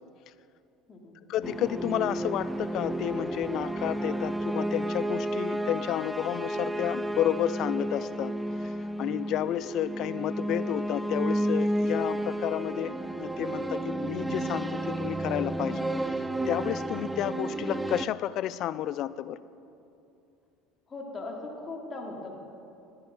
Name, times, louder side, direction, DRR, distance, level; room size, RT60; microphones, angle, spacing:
voice 1, 1.3-8.3 8.6-19.4, left 12 dB, 60° left, 16 dB, 0.4 m, -31 dB
sound 1, 1.4-18.0, right 1 dB, 5° right, 0.4 m, -31 dB
voice 2, 20.9-22.3, left 2 dB, 30° left, 0 dB, 2.5 m, -39 dB
15.0 x 10.0 x 3.8 m, 2.7 s
hypercardioid pair, 85°, 0 cm